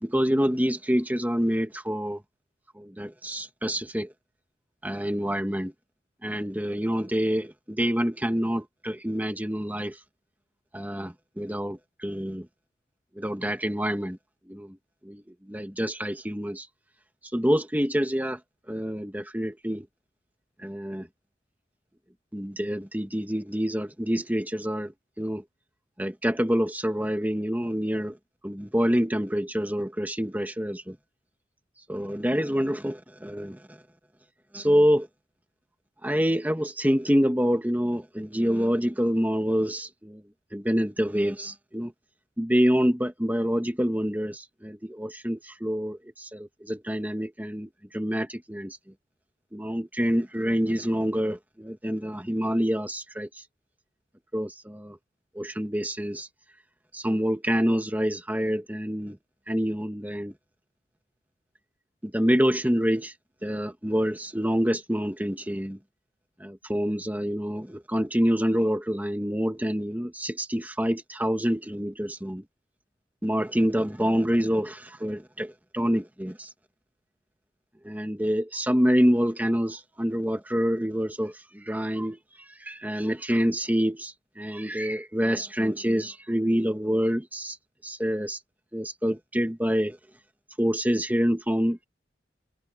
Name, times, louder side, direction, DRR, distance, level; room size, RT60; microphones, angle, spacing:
voice 1, 0.0-2.2 2.8-4.1 4.8-5.7 6.2-10.0 10.7-12.5 13.2-14.2 14.5-14.8 15.0-16.7 17.3-18.4 18.7-19.9 20.6-21.1 22.3-24.9 25.2-25.4 26.0-28.2 28.4-31.0 31.9-33.8 34.5-35.1 36.0-40.2 40.5-41.9 42.4-48.8 49.5-53.4 54.3-55.0 55.4-56.3 56.9-59.2 59.5-60.3 62.0-63.1 63.4-65.8 66.4-72.4 73.2-76.5 77.8-87.6 87.8-88.4 88.7-90.0 90.6-91.8, equal, 10° right, 1.7 m, -27 dB
head